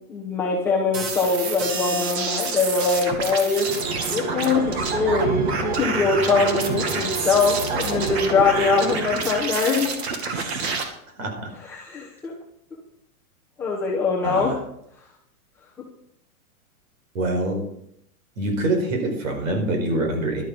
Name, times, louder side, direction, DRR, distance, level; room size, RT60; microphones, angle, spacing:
voice 1, 0.1-3.7 4.0-9.9 10.5-10.6 11.7-12.3 13.6-14.5, left 4 dB, 5° left, -6 dB, 1.0 m, -22 dB
sound 1, 0.9-10.8, right 5 dB, 45° right, 2.1 m, -28 dB
sound 2, 3.7-9.7, right 3 dB, 30° right, 1.3 m, -32 dB
voice 2, 10.3-11.5 14.2-14.6 17.1-17.6 18.4-20.4, right 1 dB, 60° right, 3 dB, 4.9 m, -26 dB
12.0 x 11.5 x 5.3 m, 0.74 s
supercardioid pair, 175°, 44 cm